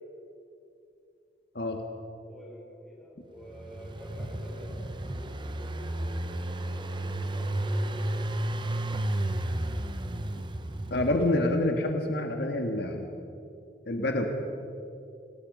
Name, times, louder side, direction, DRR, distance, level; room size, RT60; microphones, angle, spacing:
voice 1, 2.3-8.4, equal, ahead, -6 dB, 6.9 m, -48 dB
Engine, 3.4-11.5, right 1 dB, 25° right, 0.8 m, -32 dB
voice 2, 10.9-13.1 13.8-14.3, left 1 dB, 60° left, 3 dB, 1.8 m, -27 dB
27.0 x 19.0 x 5.5 m, 2.6 s
head